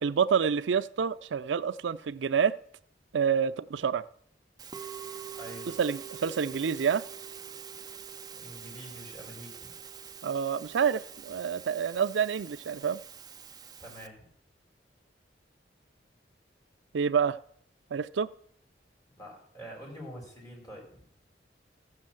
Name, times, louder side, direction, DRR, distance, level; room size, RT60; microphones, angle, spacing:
voice 1, 0.0-2.5 3.1-4.1 5.8-7.0 10.2-13.0 16.9-17.4 17.9-18.3, right 7 dB, 85° right, 0.4 m, -28 dB
Musical instrument, 4.6-14.1, right 8 dB, 20° right, 0.5 m, -44 dB
voice 2, 5.3-5.7 8.3-9.7 13.8-14.3 19.2-21.0, equal, 20° left, 5.0 m, -46 dB
14.5 x 6.4 x 7.7 m
head